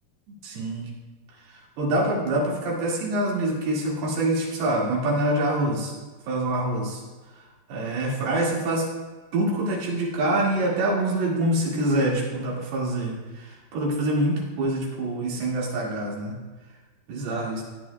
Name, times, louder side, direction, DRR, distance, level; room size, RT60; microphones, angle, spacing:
voice 1, 0.4-0.9 1.8-6.0 6.3-7.0 7.7-8.8 9.3-16.3 17.1-17.6, right 1 dB, 85° right, -5 dB, 4.2 m, -25 dB
16.5 x 9.4 x 2.3 m, 1.3 s
omnidirectional pair, 4.5 m